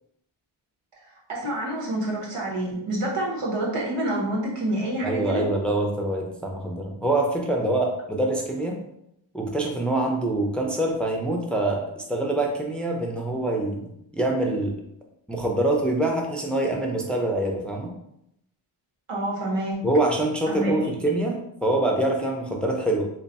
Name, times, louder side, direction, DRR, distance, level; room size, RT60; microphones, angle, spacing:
voice 1, 1.3-5.4 19.1-19.8 20.5-20.9, right 1 dB, 90° right, -3 dB, 1.1 m, -27 dB
voice 2, 5.0-8.8 9.3-14.7 15.3-17.9 19.8-23.1, right 1 dB, ahead, 0 dB, 0.4 m, -25 dB
3.1 x 2.3 x 4.0 m, 0.79 s
wide cardioid pair, 90°, 50 cm